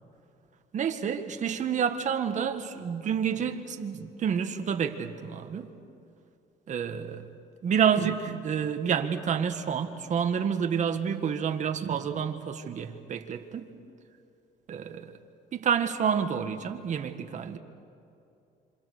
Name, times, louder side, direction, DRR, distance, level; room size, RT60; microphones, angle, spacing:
voice 1, 0.7-5.7 6.7-7.2 7.6-13.7 14.7-15.1 15.5-17.6, right 7 dB, 45° right, 6 dB, 1.8 m, -29 dB
27.0 x 26.5 x 6.7 m, 2.6 s
cardioid pair, 110°, 17 cm